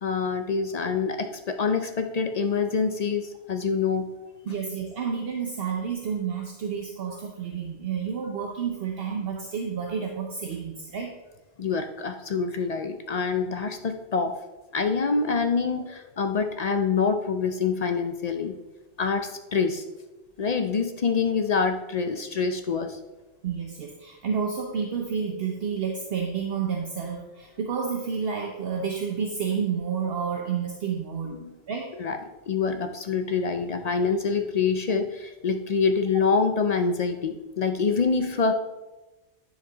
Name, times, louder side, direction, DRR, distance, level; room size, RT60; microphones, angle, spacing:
voice 1, 0.0-4.1 11.6-14.4 14.7-18.6 19.0-19.8 20.4-23.0 31.2-31.6 32.0-32.2 32.5-38.5, left 5 dB, 50° left, 7 dB, 0.5 m, -26 dB
voice 2, 4.4-11.1 23.4-31.4 31.7-31.9, right 6 dB, 65° right, 2 dB, 0.9 m, -30 dB
10.5 x 4.4 x 3.9 m, 1.1 s
omnidirectional pair, 1.1 m